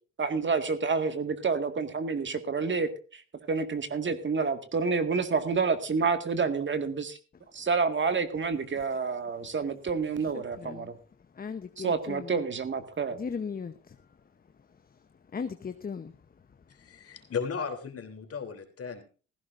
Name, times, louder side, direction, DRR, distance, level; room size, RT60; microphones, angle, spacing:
voice 1, 0.2-3.2 3.5-7.2 7.5-10.9 11.8-13.2, right 5 dB, 40° right, 1.9 m, -29 dB
voice 2, 11.4-12.2 13.2-13.7 15.3-16.1, left 6 dB, 30° left, 0.9 m, -36 dB
voice 3, 16.7-19.0, left 6 dB, 50° left, 3.3 m, -36 dB
16.0 x 15.5 x 2.6 m
cardioid pair, 90°, 30 cm